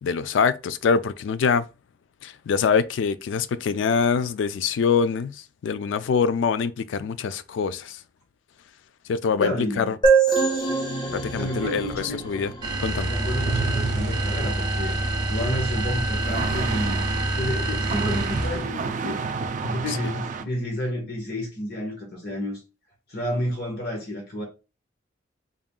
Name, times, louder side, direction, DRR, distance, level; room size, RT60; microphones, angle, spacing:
voice 1, 0.0-1.6 2.2-8.0 9.1-10.0 11.1-12.5 12.8-13.1 19.9-20.0, left 6 dB, 75° left, 0.3 m, -24 dB
voice 2, 9.4-10.0 11.3-12.4 13.1-15.0 15.3-17.0 17.3-19.2 19.6-22.6 23.1-24.4, left 1 dB, 55° left, 1.4 m, -30 dB
sound 1, 10.0-13.6, right 5 dB, 25° left, 0.6 m, -24 dB
sound 2, 12.6-18.8, right 1 dB, 25° right, 0.8 m, -27 dB
sound 3, 12.6-20.4, right 4 dB, 40° right, 0.3 m, -32 dB
3.9 x 3.6 x 2.3 m
head